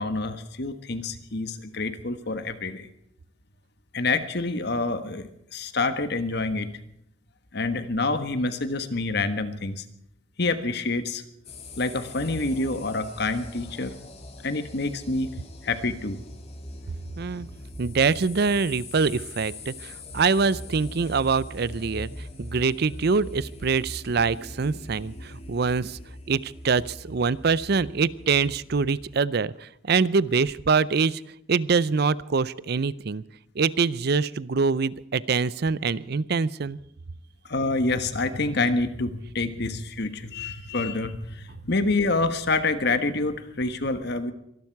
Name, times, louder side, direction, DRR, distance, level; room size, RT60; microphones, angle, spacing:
voice 1, 0.0-2.9 3.9-6.8 7.5-9.8 10.4-11.2 11.8-13.9 14.4-15.3 15.6-16.2 37.5-44.3, left 3 dB, 55° left, 10 dB, 1.4 m, -27 dB
sound 1, 11.4-29.1, left 1 dB, 30° left, 2.3 m, -42 dB
voice 2, 17.2-17.5 17.8-26.0 26.3-31.2 31.5-33.2 33.6-36.8, right 5 dB, 55° right, 19 dB, 0.5 m, -24 dB
24.5 x 12.0 x 4.7 m, 0.78 s
head